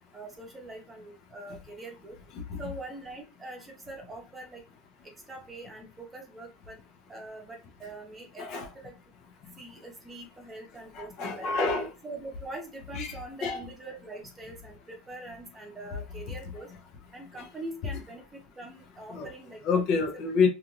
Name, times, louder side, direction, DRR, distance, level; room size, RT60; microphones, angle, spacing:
voice 1, 0.1-2.2 2.6-4.6 5.0-6.8 7.1-9.0 9.6-11.5 12.0-16.7 17.1-19.8 20.1-20.2, right 2 dB, 15° right, 0.9 m, -43 dB
voice 2, 10.9-11.9 12.9-13.1 13.4-13.6 19.1-19.3 19.6-20.5, left 5 dB, 50° left, 0.7 m, -27 dB
2.5 x 2.4 x 2.9 m
supercardioid pair, 130°, 0 cm